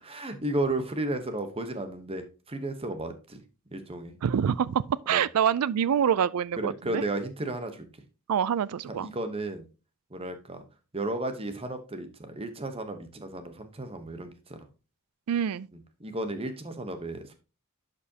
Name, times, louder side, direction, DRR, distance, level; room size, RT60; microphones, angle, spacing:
voice 1, 0.0-3.4 3.7-4.1 5.1-5.2 6.6-7.8 8.9-9.6 10.1-10.6 10.9-14.6 16.0-17.3, right 2 dB, 25° right, 1.0 m, -33 dB
voice 2, 4.2-7.0 8.3-9.1 15.3-15.7, right 8 dB, 80° right, 0.4 m, -26 dB
11.0 x 5.2 x 2.8 m
head